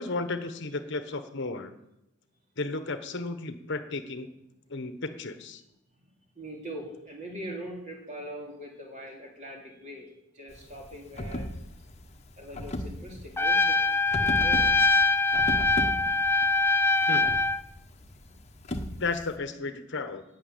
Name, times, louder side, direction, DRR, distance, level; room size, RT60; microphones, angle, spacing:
voice 1, 0.0-1.7 2.6-4.3 4.7-5.6 17.1-17.2 19.0-20.2, left 3 dB, 60° left, 9 dB, 1.1 m, -33 dB
voice 2, 6.4-11.5 12.4-13.8 14.2-14.7 18.2-18.4, right 1 dB, 35° right, -1 dB, 3.6 m, -42 dB
sound 1, 10.5-19.4, left 1 dB, 35° left, 1.2 m, -37 dB
Trumpet, 13.4-17.6, left 3 dB, 10° left, 0.4 m, -23 dB
11.5 x 7.7 x 9.2 m, 0.92 s
head